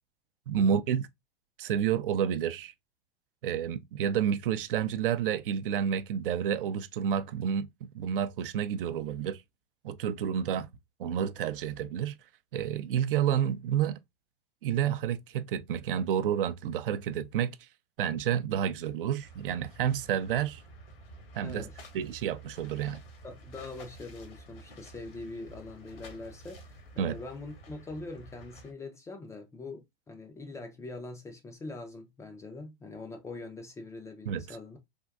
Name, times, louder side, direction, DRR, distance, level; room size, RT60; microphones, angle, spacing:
voice 1, 0.5-1.1 1.6-2.7 3.4-9.4 9.8-10.7 11.0-12.2 12.5-14.0 14.6-17.6 18.0-20.6 21.3-21.7 21.9-23.0 27.0-27.2 34.3-34.6, right 9 dB, 65° right, 0.4 m, -30 dB
sound 1, 19.2-28.7, right 1 dB, 75° left, 1.1 m, -50 dB
voice 2, 21.4-21.8 23.2-34.8, left 3 dB, 10° left, 0.3 m, -43 dB
3.5 x 2.5 x 2.2 m
hypercardioid pair, 100°, 30 cm